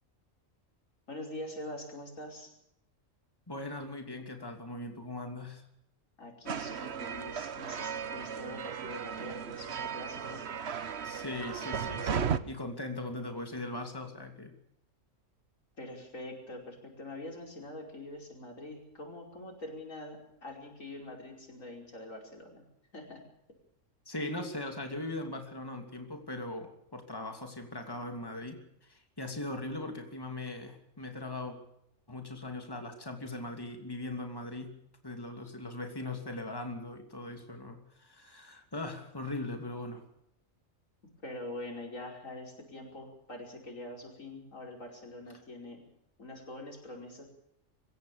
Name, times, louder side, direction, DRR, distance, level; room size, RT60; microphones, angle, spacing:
voice 1, 1.1-2.5 6.2-10.5 15.8-22.7 22.9-23.2 41.2-45.8 46.2-47.3, left 1 dB, 90° left, 1 dB, 5.8 m, -44 dB
voice 2, 3.5-5.6 11.0-14.5 24.1-31.5 32.1-34.7 35.0-40.0, left 2 dB, 15° left, 4 dB, 2.9 m, -40 dB
sound 1, 6.5-12.4, right 7 dB, 60° right, 1.2 m, -36 dB
25.5 x 16.0 x 7.1 m, 0.76 s
omnidirectional pair, 1.3 m